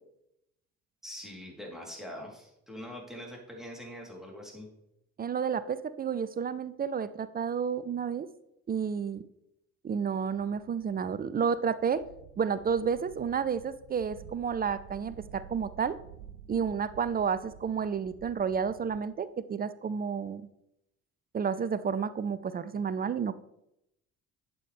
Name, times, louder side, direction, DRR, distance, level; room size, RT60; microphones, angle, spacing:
voice 1, 1.0-4.7, equal, ahead, -2 dB, 3.7 m, -43 dB
voice 2, 5.2-8.3 8.7-9.2 9.8-12.0 12.4-16.0 16.5-20.5 21.3-23.4, right 6 dB, 20° right, 15 dB, 0.5 m, -31 dB
sound 1, 10.3-19.0, right 9 dB, 70° right, 0.8 m, -51 dB
11.5 x 8.2 x 3.5 m, 0.82 s
figure-of-eight pair, 50°, 44 cm